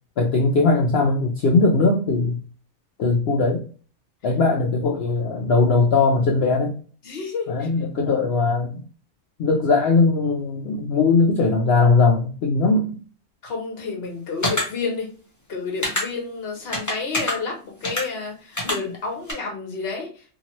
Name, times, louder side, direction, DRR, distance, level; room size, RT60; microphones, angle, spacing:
voice 1, 0.2-2.3 3.0-3.6 4.2-6.8 7.5-8.7 9.4-13.0, left 3 dB, 65° left, 0.6 m, -19 dB
voice 2, 7.0-7.7 13.4-15.1 15.5-20.2, left 4 dB, 50° left, 1.1 m, -30 dB
sound 1, 14.4-14.6 15.8-16.0 16.7-17.3 17.8-18.0 18.6-18.8 19.3-19.4, left 1 dB, 20° left, 0.6 m, -24 dB
2.8 x 2.5 x 2.9 m
omnidirectional pair, 1.5 m